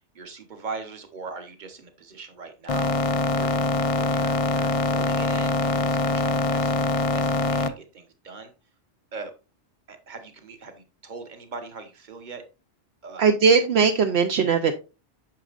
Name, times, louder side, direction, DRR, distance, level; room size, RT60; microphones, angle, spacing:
voice 1, 0.1-2.9 3.4-3.6 3.9-6.9 7.1-8.5 9.1-9.3 9.9-12.4 13.0-13.3, right 4 dB, 45° right, 7 dB, 1.2 m, -40 dB
sound 1, 2.7-7.7, left 2 dB, 40° left, 0.5 m, -23 dB
voice 2, 13.2-14.7, right 5 dB, 70° right, 6 dB, 0.9 m, -19 dB
8.9 x 6.1 x 2.5 m, 0.31 s
omnidirectional pair, 1.2 m